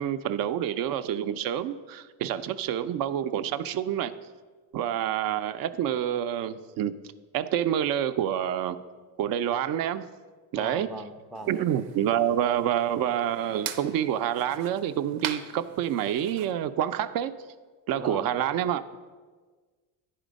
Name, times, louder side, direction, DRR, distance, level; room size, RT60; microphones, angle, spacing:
voice 1, 0.0-4.1 4.7-6.9 7.3-8.8 9.2-10.1 10.5-10.9 11.5-17.3 17.9-18.8, right 10 dB, 55° right, 11 dB, 0.5 m, -27 dB
voice 2, 10.5-11.6 18.0-18.3, right 1 dB, ahead, 7 dB, 0.4 m, -40 dB
sound 1, 11.3-16.5, right 9 dB, 90° right, 0.7 m, -41 dB
9.9 x 4.4 x 5.1 m, 1.4 s
cardioid pair, 110°, 43 cm